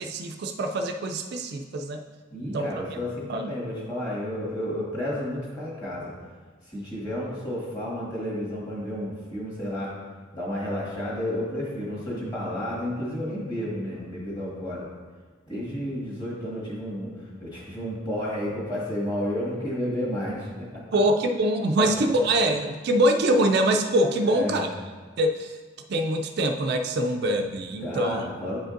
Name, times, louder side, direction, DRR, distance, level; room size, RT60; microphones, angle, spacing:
voice 1, 0.0-2.0 2.4-3.0 3.3-3.4 20.9-24.7 25.2-25.6 25.9-28.2, right 1 dB, 55° right, 4 dB, 0.4 m, -24 dB
voice 2, 2.3-6.1 6.7-9.9 10.3-14.9 15.5-17.1 17.4-20.8 21.8-22.1 24.2-24.6 27.8-28.6, left 1 dB, 20° left, -6 dB, 1.7 m, -31 dB
8.7 x 5.1 x 2.5 m, 1.4 s
head